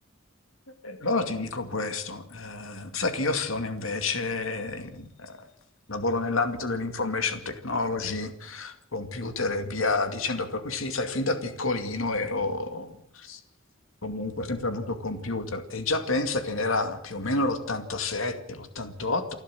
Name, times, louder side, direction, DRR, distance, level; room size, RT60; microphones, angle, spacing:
voice 1, 0.8-5.4 5.9-13.4 14.0-19.3, left 3 dB, 80° left, 8 dB, 2.4 m, -29 dB
29.0 x 12.5 x 7.8 m, 0.72 s
head